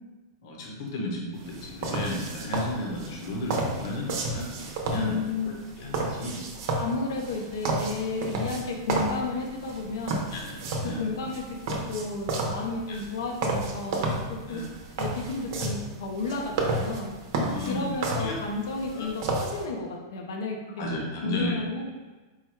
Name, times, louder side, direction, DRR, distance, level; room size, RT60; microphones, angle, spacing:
voice 1, 0.4-5.2 5.4-6.4 10.3-11.0 12.9-13.0 14.5-14.7 17.4-17.9 18.2-18.4 18.9-19.1 20.8-21.6, left 1 dB, 60° left, -1 dB, 1.0 m, -34 dB
sound 1, 1.4-19.6, right 2 dB, 50° right, 0.8 m, -32 dB
voice 2, 4.9-5.5 6.8-10.3 10.8-14.6 15.0-17.1 17.7-20.8 21.2-21.9, left 3 dB, 80° left, 1 dB, 0.8 m, -32 dB
4.8 x 2.3 x 4.5 m, 1.2 s
supercardioid pair, 155°, 2 cm